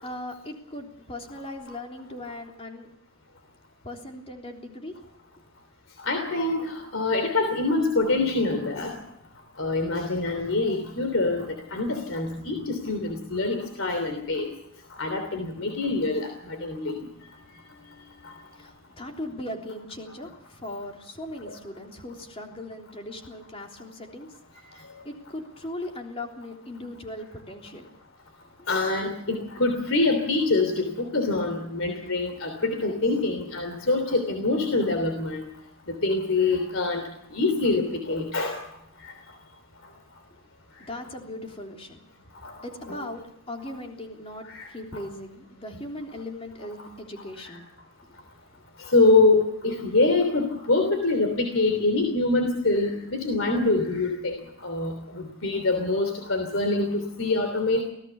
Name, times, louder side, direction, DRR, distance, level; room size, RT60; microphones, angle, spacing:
voice 1, 0.0-2.9 3.8-5.0 18.5-24.4 24.7-27.9 28.6-28.7 40.8-42.0 42.6-47.7 48.0-48.2, left 1 dB, 30° left, 2 dB, 3.4 m, -39 dB
voice 2, 6.0-9.0 9.6-14.5 15.0-17.0 18.2-18.3 21.4-21.6 28.7-35.5 36.0-37.0 37.3-38.6 39.0-39.1 42.4-42.5 42.9-43.0 44.4-44.7 47.4-47.5 48.8-57.8, left 3 dB, 75° left, 5 dB, 3.2 m, -25 dB
24.5 x 17.0 x 7.0 m, 0.75 s
head